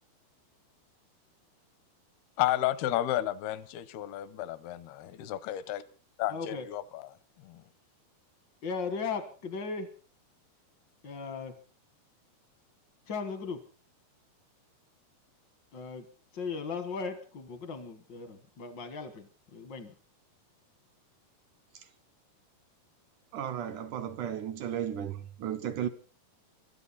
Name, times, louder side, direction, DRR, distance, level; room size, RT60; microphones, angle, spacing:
voice 1, 2.4-5.8 6.2-7.0 7.4-7.6, left 14 dB, 80° left, 2.8 m, -32 dB
voice 2, 6.3-6.7 8.6-9.9 11.0-11.5 13.1-13.6 15.7-16.0 16.3-19.9, left 5 dB, 60° left, 1.1 m, -37 dB
voice 3, 23.3-25.9, right 9 dB, 75° right, 1.9 m, -34 dB
24.5 x 13.0 x 4.2 m
omnidirectional pair, 4.5 m